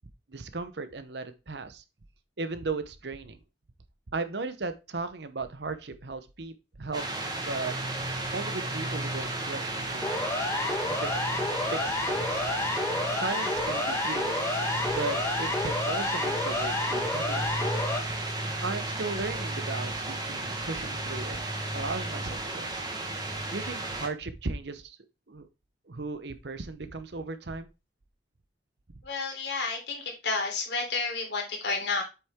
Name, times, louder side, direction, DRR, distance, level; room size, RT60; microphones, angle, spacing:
voice 1, 0.3-1.8 2.4-3.4 4.1-7.7 8.3-10.5 10.9-11.1 11.7-12.5 13.1-14.4 14.9-17.5 18.6-22.8 23.2-25.0 25.3-25.5 25.9-27.7, right 3 dB, 65° right, 11 dB, 0.9 m, -36 dB
sound 1, 6.9-24.1, right 2 dB, 20° right, 1.4 m, -33 dB
Siren, 10.0-18.0, left 2 dB, 15° left, 1.2 m, -30 dB
voice 2, 29.0-32.0, left 4 dB, 65° left, 1 dB, 3.4 m, -31 dB
7.9 x 6.0 x 3.6 m, 0.29 s
head